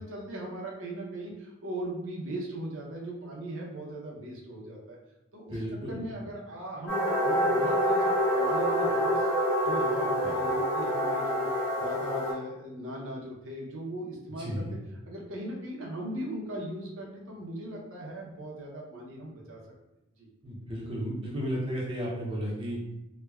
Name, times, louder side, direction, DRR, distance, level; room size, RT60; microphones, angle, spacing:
voice 1, 0.0-5.0 5.3-8.1 8.3-9.3 9.6-11.4 11.7-14.7 15.1-19.6 20.2-20.3, right 1 dB, 80° right, -2 dB, 0.7 m, -39 dB
voice 2, 5.5-6.0 10.2-10.4 14.4-14.7 20.4-22.8, equal, 25° right, -4 dB, 0.5 m, -33 dB
sound 1, 6.9-12.3, equal, 65° left, 1.2 m, -26 dB
3.1 x 2.1 x 2.3 m, 0.94 s
head